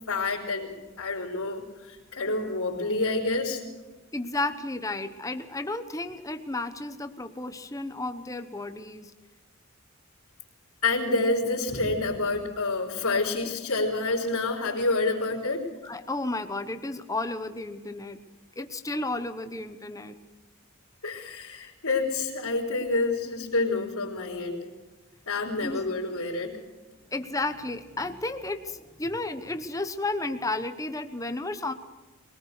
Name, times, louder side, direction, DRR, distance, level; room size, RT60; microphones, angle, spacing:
voice 1, 0.1-3.6 10.8-15.7 21.0-24.7 25.3-26.6, left 3 dB, 85° left, -5 dB, 3.9 m, -28 dB
voice 2, 4.1-9.1 15.8-18.2 18.6-20.1 25.6-25.8 27.1-31.7, left 2 dB, 15° left, 8 dB, 1.0 m, -32 dB
22.5 x 18.0 x 6.7 m, 1.2 s
head